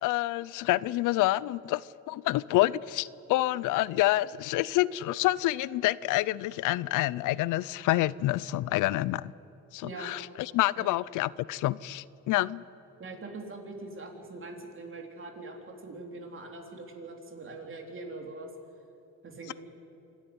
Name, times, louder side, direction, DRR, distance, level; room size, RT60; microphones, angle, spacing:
voice 1, 0.0-9.3 9.7-12.6, left 17 dB, 90° left, 21 dB, 0.5 m, -28 dB
voice 2, 9.8-10.2 10.8-10.9 13.0-18.5 19.2-19.5, right 3 dB, 40° right, 3 dB, 3.7 m, -42 dB
26.5 x 12.5 x 9.7 m, 2.8 s
cardioid pair, 90°, 30 cm